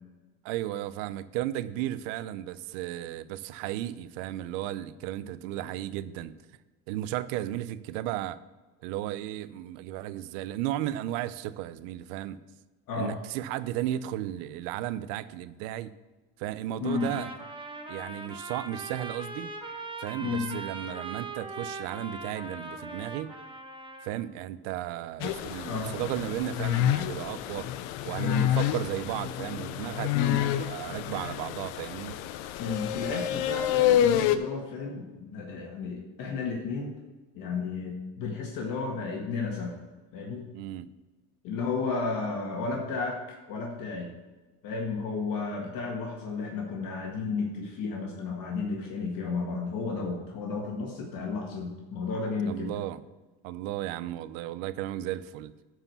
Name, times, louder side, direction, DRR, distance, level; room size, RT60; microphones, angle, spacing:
voice 1, 0.4-6.3 6.9-8.4 8.8-12.4 12.9-15.9 16.4-17.3 17.9-19.5 20.0-23.3 24.0-27.7 28.0-32.2 40.5-40.9 52.5-53.0 53.4-55.5, right 13 dB, 80° right, 15 dB, 0.6 m, -34 dB
Trumpet, 16.8-24.2, right 3 dB, 15° right, 1.0 m, -40 dB
sound 1, 25.2-34.4, left 11 dB, 75° left, 0.7 m, -28 dB
voice 2, 32.6-36.9 37.3-39.8 40.1-40.5 41.4-43.2 43.5-44.1 44.6-52.7, left 4 dB, 60° left, -1 dB, 1.8 m, -32 dB
11.5 x 4.9 x 6.7 m, 1.2 s
supercardioid pair, 100°, 37 cm